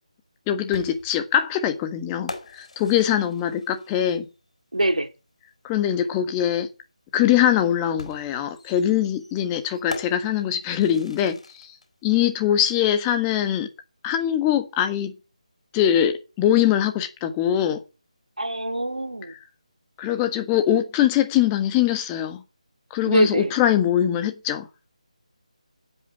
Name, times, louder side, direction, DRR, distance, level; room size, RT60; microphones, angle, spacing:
voice 1, 0.5-4.3 5.6-6.7 7.1-11.7 12.0-13.7 14.0-15.1 15.7-17.8 20.0-22.4 22.9-24.7, left 10 dB, 15° left, 1.5 m, -22 dB
sound 1, 0.7-4.4 5.8-5.9 8.0-11.9, left 3 dB, 60° left, 4.9 m, -42 dB
voice 2, 4.7-5.1 18.4-19.4 23.0-23.5, right 1 dB, 80° right, 2.7 m, -23 dB
9.9 x 8.7 x 9.8 m
figure-of-eight pair, 155°, 4 cm